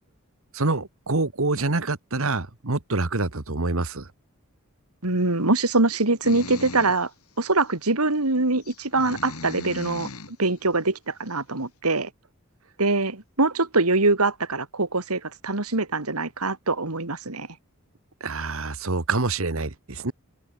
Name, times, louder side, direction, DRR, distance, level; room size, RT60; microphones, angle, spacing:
voice 1, 0.5-4.1 18.2-20.1, right 3 dB, 65° right, 1.7 m, -26 dB
voice 2, 5.0-7.1 7.4-12.1 12.8-17.5, right 3 dB, 85° right, 2.8 m, -23 dB
sound 1, 6.2-7.0 7.6-7.7 8.6-10.4, left 2 dB, 85° left, 7.0 m, -38 dB
head